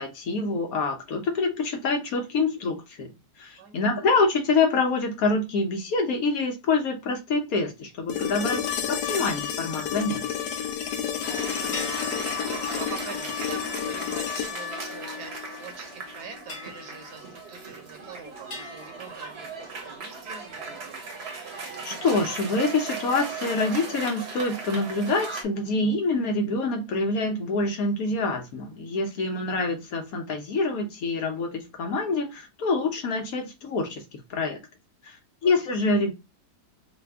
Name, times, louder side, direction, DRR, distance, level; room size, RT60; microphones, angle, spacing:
voice 1, 0.0-3.1 3.4-8.7 9.0-10.2 21.8-34.0 34.3-34.6 35.0-35.2 35.4-36.1, left 3 dB, 65° left, 1.1 m, -26 dB
voice 2, 3.6-3.9 11.2-21.0 35.4-35.7, right 6 dB, 75° right, 1.3 m, -44 dB
sound 1, 8.1-16.2 18.3-18.4, left 8 dB, 85° left, 1.2 m, -31 dB
Cheering / Applause, 11.2-25.4, right 4 dB, 50° right, 0.9 m, -38 dB
sound 2, 11.7-15.4 16.5-18.0 18.5-20.2, left 3 dB, 40° left, 1.4 m, -44 dB
3.3 x 2.2 x 3.3 m
omnidirectional pair, 1.8 m